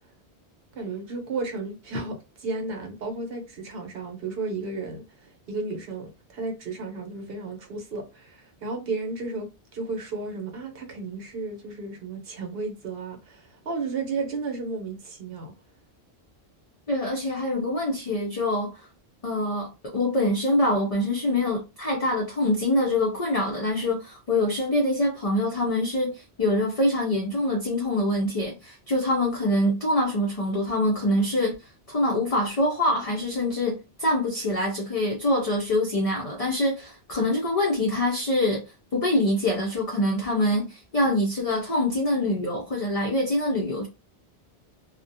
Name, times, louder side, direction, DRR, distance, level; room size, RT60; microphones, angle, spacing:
voice 1, 0.7-9.5 9.7-15.5, right 3 dB, 65° right, 0.9 m, -33 dB
voice 2, 16.9-18.9 19.2-31.5 31.9-38.6 38.9-43.9, left 1 dB, 45° left, 0.5 m, -25 dB
2.3 x 2.1 x 2.6 m
omnidirectional pair, 1.1 m